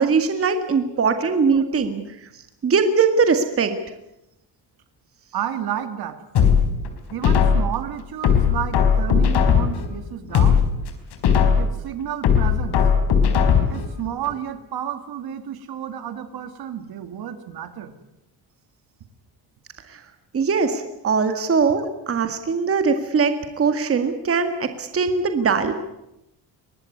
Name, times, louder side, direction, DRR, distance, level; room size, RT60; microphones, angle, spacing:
voice 1, 0.0-2.0 2.6-3.8 19.9-20.0 20.3-25.7, right 5 dB, 30° right, 8 dB, 1.9 m, -21 dB
voice 2, 5.3-6.7 7.1-10.7 11.6-12.8 13.7-17.9 21.3-21.4, right 10 dB, 55° right, 10 dB, 2.5 m, -31 dB
sound 1, 6.3-7.8 8.2-9.8 10.2-11.8 12.2-13.8 14.2-14.3, left 7 dB, 65° left, 4.6 m, -18 dB
24.0 x 19.5 x 9.6 m, 0.88 s
cardioid pair, 160°, 43 cm